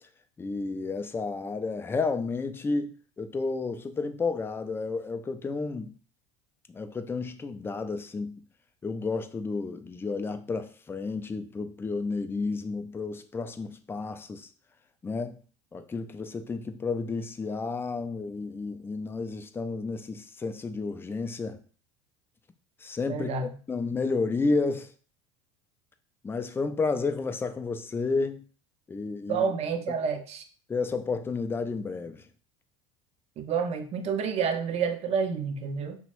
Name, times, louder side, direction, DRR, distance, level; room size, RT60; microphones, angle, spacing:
voice 1, 0.4-5.9 6.7-8.4 8.8-14.5 15.0-15.4 15.7-21.6 22.8-23.4 23.7-24.9 26.2-28.4 28.9-29.5 30.7-32.2, left 4 dB, 15° left, 0.3 m, -31 dB
voice 2, 23.1-23.5 29.3-30.4 33.4-36.0, right 6 dB, 40° right, 0.5 m, -29 dB
2.9 x 2.0 x 3.0 m
hypercardioid pair, 75°, 16 cm